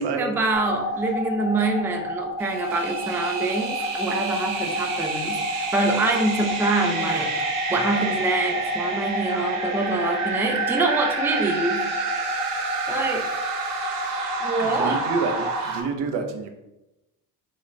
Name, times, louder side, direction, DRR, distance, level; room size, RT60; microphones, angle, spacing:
voice 1, 0.0-7.3 7.7-11.8 12.9-13.2 14.4-15.0, right 2 dB, 5° right, 1 dB, 0.5 m, -25 dB
sound 1, 0.5-15.6, left 1 dB, 55° left, 1.1 m, -30 dB
sound 2, 2.4-15.8, right 5 dB, 45° right, 1.0 m, -30 dB
voice 2, 7.0-8.2 14.6-16.5, right 5 dB, 60° right, 5 dB, 0.7 m, -30 dB
4.0 x 2.4 x 3.0 m, 0.98 s
hypercardioid pair, 60°, 47 cm